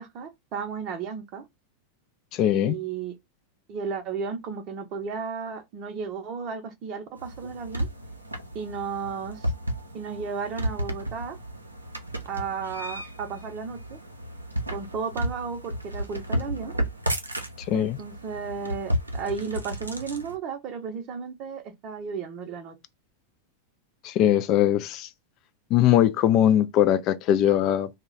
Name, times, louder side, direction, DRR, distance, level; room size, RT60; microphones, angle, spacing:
voice 1, 0.0-1.4 2.5-3.2 3.7-7.9 8.5-9.5 9.9-11.4 12.3-14.0 14.7-16.7 17.7-22.8, right 5 dB, 35° right, 0.6 m, -34 dB
voice 2, 2.3-2.8 17.7-18.0 24.0-25.1 25.7-27.9, left 11 dB, 40° left, 0.3 m, -21 dB
sound 1, 7.2-20.3, right 1 dB, 85° right, 0.5 m, -33 dB
2.3 x 2.1 x 3.7 m
figure-of-eight pair, 90°, 0 cm